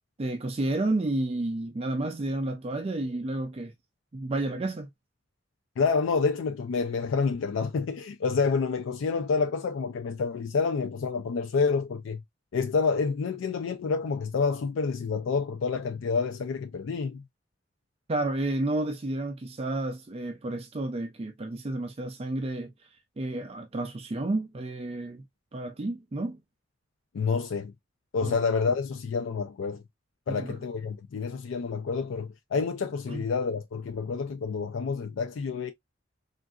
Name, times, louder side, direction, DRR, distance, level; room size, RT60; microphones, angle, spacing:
voice 1, 0.2-3.7 4.1-4.9 18.1-22.7 23.2-25.2 25.5-26.4 28.2-28.4 30.3-30.6 33.1-33.2, right 2 dB, 30° right, 0.4 m, -31 dB
voice 2, 5.8-12.2 12.5-17.2 27.1-27.7 28.1-29.8 30.3-35.7, left 5 dB, 85° left, 0.4 m, -28 dB
3.6 x 2.5 x 2.3 m
head